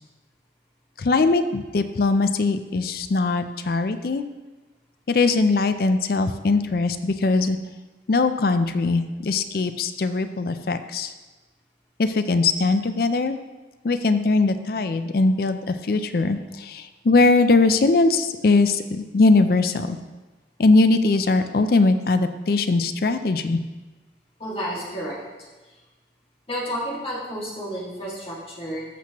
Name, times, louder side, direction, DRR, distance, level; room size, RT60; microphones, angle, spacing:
voice 1, 1.0-4.2 5.1-7.6 8.1-11.1 12.0-13.4 13.8-20.0 20.6-23.6, left 3 dB, 55° left, 10 dB, 0.4 m, -21 dB
voice 2, 24.4-25.2 26.5-28.8, equal, 30° left, -5 dB, 2.0 m, -31 dB
14.0 x 6.0 x 3.0 m, 1.2 s
head